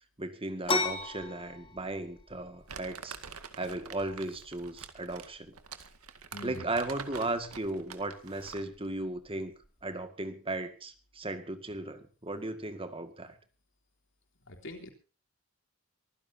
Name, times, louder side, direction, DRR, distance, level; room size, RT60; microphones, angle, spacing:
voice 1, 0.2-3.2 3.6-5.5 6.4-9.5 9.8-13.4, right 2 dB, 25° right, 9 dB, 1.9 m, -36 dB
sound 1, 0.6-10.0, left 3 dB, 25° left, 2.8 m, -40 dB
Crumpling crinkling, 2.7-8.7, right 6 dB, 85° right, 2.0 m, -46 dB
voice 2, 6.3-6.6 14.5-14.9, left 2 dB, 60° left, 3 dB, 3.5 m, -43 dB
24.5 x 15.5 x 2.8 m, 0.35 s
head